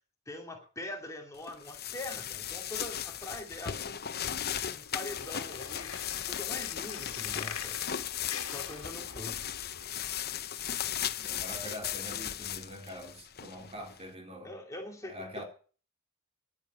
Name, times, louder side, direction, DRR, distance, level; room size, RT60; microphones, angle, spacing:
voice 1, 0.3-3.9 4.7-6.0 6.3-7.8 8.5-9.4 14.4-15.4, left 1 dB, 15° left, 2.5 m, -43 dB
sound 1, 1.4-14.0, left 10 dB, 50° left, 0.9 m, -37 dB
sound 2, 4.9-9.9, left 7 dB, 90° left, 1.9 m, -43 dB
voice 2, 11.2-14.5 15.0-15.4, equal, 30° right, 3.7 m, -44 dB
11.0 x 9.8 x 9.2 m
head